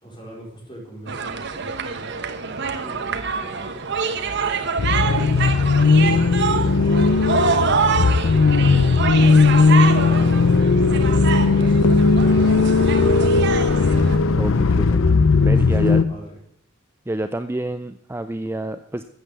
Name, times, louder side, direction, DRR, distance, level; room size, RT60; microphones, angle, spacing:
voice 1, 0.0-2.2 2.4-6.0 6.3-13.6 15.3-16.4, right 1 dB, 25° left, -2 dB, 4.5 m, -42 dB
sound 1, 1.1-14.2, right 5 dB, 55° right, 1.1 m, -26 dB
sound 2, 4.8-16.0, left 4 dB, 70° left, 0.6 m, -17 dB
voice 2, 14.4-15.0 15.4-16.0 17.1-19.0, right 1 dB, 10° right, 10 dB, 0.4 m, -28 dB
13.5 x 8.3 x 6.8 m, 0.68 s
head